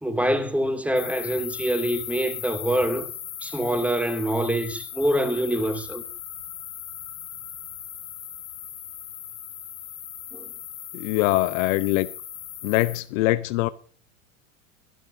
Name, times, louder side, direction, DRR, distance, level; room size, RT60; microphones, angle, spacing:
voice 1, 0.0-3.1 3.4-6.0 10.3-10.5, equal, 5° right, 2.5 m, -25 dB
sound 1, 1.0-13.0, left 10 dB, 85° left, 2.1 m, -38 dB
voice 2, 10.9-12.1 12.6-13.7, left 17 dB, 65° left, 0.8 m, -23 dB
23.5 x 12.0 x 2.7 m
hypercardioid pair, 90°, 43 cm